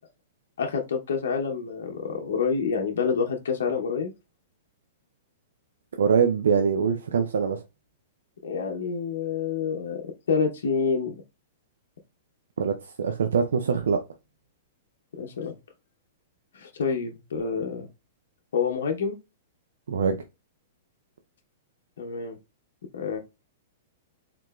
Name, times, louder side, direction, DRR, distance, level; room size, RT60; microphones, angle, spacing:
voice 1, 0.6-4.1 8.4-11.2 15.2-15.5 16.5-17.9 18.5-19.1 22.0-22.4 22.9-23.2, left 5 dB, 80° left, 0.7 m, -28 dB
voice 2, 6.0-7.6 12.6-14.0 19.9-20.2, right 6 dB, 85° right, 0.4 m, -23 dB
3.7 x 2.8 x 2.3 m
hypercardioid pair, 135°, 0 cm